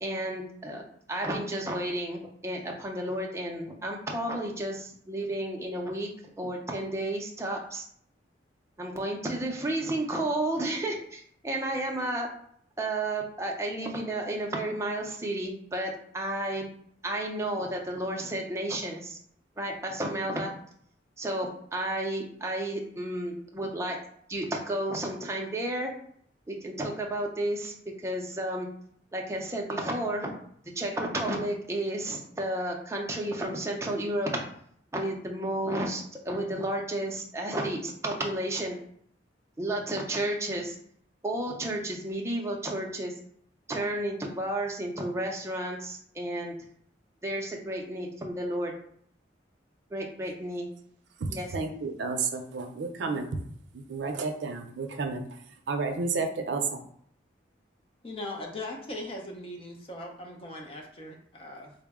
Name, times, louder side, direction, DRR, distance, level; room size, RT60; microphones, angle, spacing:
voice 1, 0.0-0.8 1.1-6.1 6.4-7.9 8.8-12.3 12.8-16.7 17.0-19.2 19.6-20.5 21.2-24.0 24.3-25.9 26.5-27.7 28.0-28.7 29.1-30.4 30.7-34.3 34.9-38.8 39.6-40.8 41.2-43.1 43.7-46.5 47.2-48.7 49.9-50.7 51.3-51.5, right 1 dB, 15° right, 0 dB, 0.5 m, -32 dB
voice 2, 51.5-53.3 53.7-55.2 55.7-56.8, right 4 dB, 80° right, 5 dB, 0.5 m, -31 dB
voice 3, 58.0-61.7, left 1 dB, 30° left, 1 dB, 0.5 m, -39 dB
3.7 x 2.1 x 3.5 m, 0.65 s
head